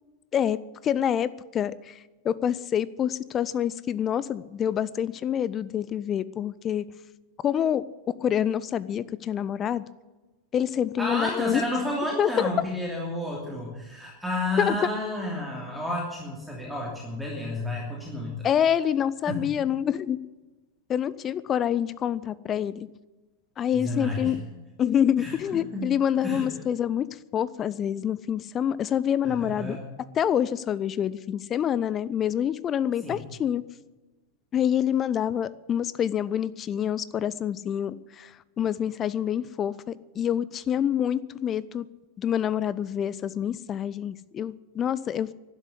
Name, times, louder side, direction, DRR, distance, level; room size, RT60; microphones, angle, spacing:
voice 1, 0.3-6.9 7.4-9.8 10.5-11.6 12.2-12.5 14.6-14.8 18.4-20.2 20.9-22.9 23.6-24.4 24.8-29.8 30.2-33.6 34.5-41.9 42.2-45.3, left 9 dB, 25° left, 18 dB, 0.5 m, -27 dB
voice 2, 11.0-18.5 19.2-19.4 23.7-24.4 25.2-25.4 25.7-25.9 26.2-26.5 29.2-29.8 33.0-33.2, left 1 dB, ahead, -3 dB, 2.9 m, -31 dB
12.0 x 10.5 x 9.7 m, 1.2 s
figure-of-eight pair, 90°, 0 cm